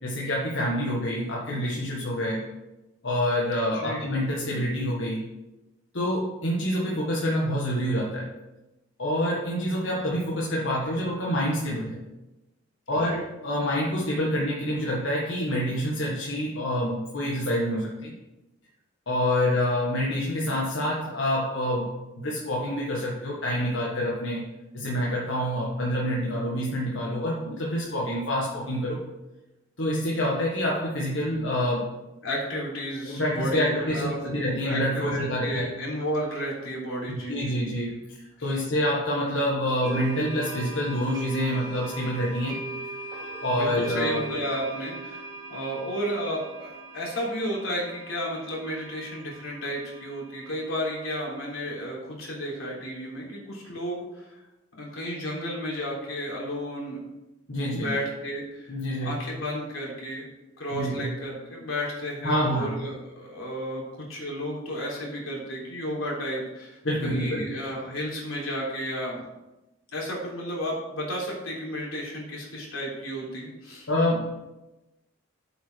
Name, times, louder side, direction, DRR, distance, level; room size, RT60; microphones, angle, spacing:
voice 1, 0.0-2.5 3.0-5.3 5.9-8.3 9.0-12.0 12.9-18.1 19.1-24.4 24.7-29.0 29.8-31.9 33.0-35.7 37.1-42.6 43.4-44.2 57.5-57.9 58.7-59.2 60.7-61.1 62.2-62.7 66.8-67.5 73.9-74.5, equal, 70° left, -4 dB, 1.5 m, -27 dB
voice 2, 3.7-4.1 12.9-13.2 32.2-34.2 34.7-37.6 38.5-38.6 43.5-54.4 54.7-57.0 57.7-58.8 59.0-60.3 60.6-69.2 69.9-73.9, equal, 85° left, -4 dB, 3.6 m, -32 dB
sound 1, 39.8-51.4, right 3 dB, 20° right, 2.0 m, -40 dB
8.0 x 6.0 x 6.2 m, 1.0 s
head